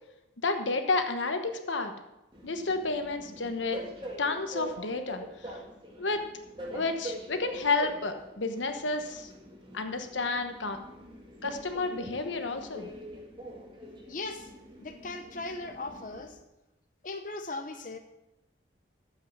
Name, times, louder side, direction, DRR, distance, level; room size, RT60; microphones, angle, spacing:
voice 1, 0.4-1.9 2.4-3.8 4.2-5.5 6.0-6.2 6.7-9.3 9.7-10.8 11.4-12.9, left 3 dB, 90° left, 7 dB, 1.1 m, -31 dB
Train, 2.3-16.3, equal, 25° right, 1.9 m, -44 dB
voice 2, 14.1-14.5 14.8-16.4 17.0-18.0, left 2 dB, 45° left, 6 dB, 0.9 m, -38 dB
13.5 x 5.6 x 7.1 m, 0.93 s
head